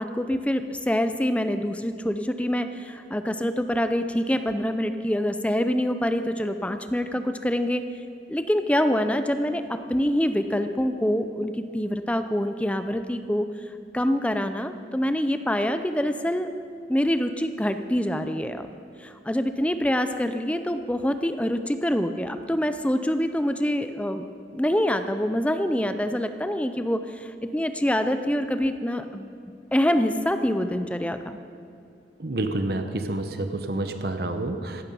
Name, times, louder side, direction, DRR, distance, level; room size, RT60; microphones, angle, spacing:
voice 1, 0.0-7.8 8.3-16.5 16.9-18.7 19.0-24.2 24.5-29.3 29.7-31.4, equal, 5° left, 9 dB, 0.5 m, -25 dB
voice 2, 32.2-34.8, right 2 dB, 60° right, 7 dB, 0.9 m, -28 dB
15.0 x 12.5 x 5.5 m, 2.4 s
head